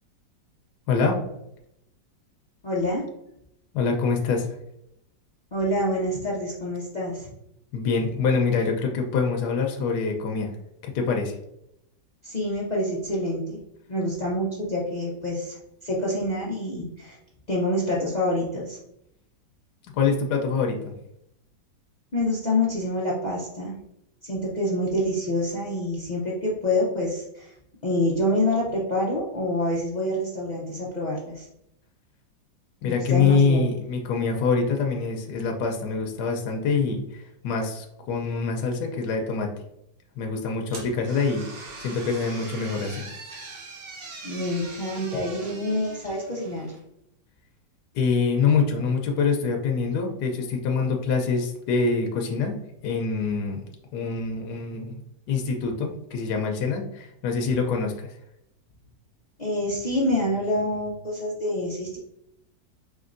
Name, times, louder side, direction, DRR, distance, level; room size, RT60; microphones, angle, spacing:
voice 1, 0.9-1.2 3.7-4.5 7.7-10.5 10.8-11.4 19.9-20.9 32.8-39.5 40.2-43.0 47.9-52.5 52.8-53.6 53.9-55.0 55.3-58.2, left 5 dB, 70° left, 2 dB, 1.1 m, -25 dB
voice 2, 2.6-3.0 5.5-7.3 12.2-13.6 13.9-15.6 15.8-17.2 17.5-18.8 22.1-23.7 24.2-27.5 27.8-31.5 32.8-33.6 44.2-46.7 59.4-62.0, left 1 dB, 90° left, -6 dB, 0.3 m, -27 dB
sound 1, 40.7-46.8, right 3 dB, 75° right, 1.5 m, -41 dB
5.2 x 3.0 x 2.5 m, 0.80 s
omnidirectional pair, 2.0 m